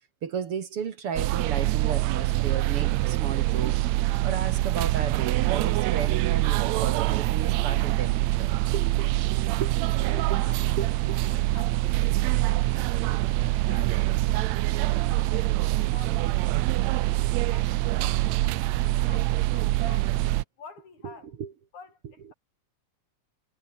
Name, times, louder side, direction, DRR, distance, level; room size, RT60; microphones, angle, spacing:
voice 1, 0.2-3.9 4.2-9.1 9.6-9.7 10.0-10.5 10.8-11.2 21.0-21.1 21.4-21.5, right 7 dB, 55° right, 2.3 m, -34 dB
sound 1, 1.2-20.4, right 18 dB, 80° right, 1.8 m, -25 dB
voice 2, 10.0-20.1 20.6-21.3 21.7-22.3, left 5 dB, 75° left, 5.9 m, -50 dB
omnidirectional pair, 3.4 m